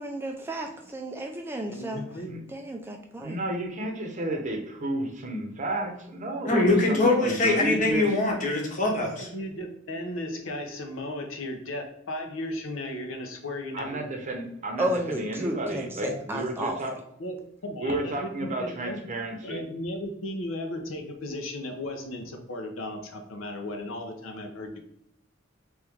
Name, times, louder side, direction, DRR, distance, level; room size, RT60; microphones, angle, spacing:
voice 1, 0.0-2.0 2.5-3.4 14.8-16.8, right 1 dB, 10° right, 2 dB, 0.3 m, -32 dB
voice 2, 1.7-2.3 9.2-14.0 16.0-16.8 17.2-17.4 17.6-19.1 19.4-24.8, left 1 dB, 75° left, 4 dB, 0.7 m, -36 dB
voice 3, 3.2-8.1 13.7-16.9 17.8-19.6, right 1 dB, 40° right, 2 dB, 0.8 m, -32 dB
voice 4, 6.4-9.3, left 2 dB, 40° left, 0 dB, 1.1 m, -23 dB
3.4 x 3.2 x 3.5 m, 0.76 s
head